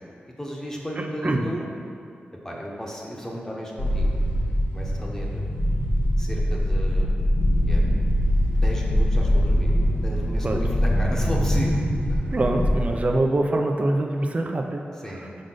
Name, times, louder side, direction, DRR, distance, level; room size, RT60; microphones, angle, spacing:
voice 1, 0.4-1.7 2.4-4.4 4.7-5.5 6.2-7.1 7.7-7.8 8.6-9.7 10.0-12.3 15.0-15.3, equal, 15° left, -3 dB, 1.1 m, -34 dB
voice 2, 1.0-1.5 10.4-10.6 12.3-14.8, right 2 dB, 35° right, 3 dB, 0.5 m, -24 dB
sound 1, 3.8-13.2, equal, 70° left, 1.4 m, -22 dB
6.5 x 5.1 x 3.9 m, 2.4 s
wide cardioid pair, 85°, 4 cm